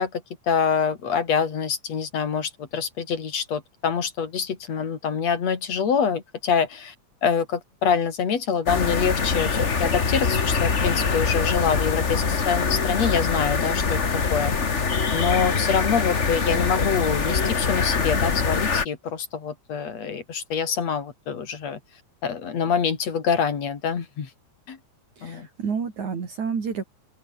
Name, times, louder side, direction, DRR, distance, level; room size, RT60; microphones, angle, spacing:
voice 1, 0.0-6.9 7.2-14.0 14.3-14.5 15.1-21.8 22.2-24.3 24.7-24.8 25.2-25.5, left 6 dB, 55° left, 3.8 m, -25 dB
sound 1, 8.7-18.8, left 5 dB, 30° left, 1.3 m, -24 dB
voice 2, 25.2-26.8, right 6 dB, 65° right, 5.0 m, -29 dB
open air
omnidirectional pair, 3.7 m